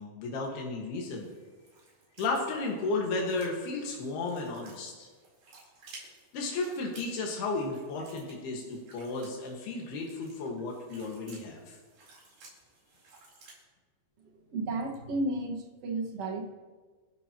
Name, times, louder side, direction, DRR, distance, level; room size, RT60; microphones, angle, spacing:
voice 1, 0.0-1.3 2.2-5.1 6.3-11.8, left 3 dB, 90° left, -1 dB, 3.8 m, -34 dB
sound 1, 0.9-13.6, right 3 dB, 75° right, 5.8 m, -56 dB
voice 2, 14.5-16.5, right 2 dB, 50° right, 0 dB, 2.2 m, -33 dB
28.5 x 12.0 x 3.0 m, 1.4 s
omnidirectional pair, 4.4 m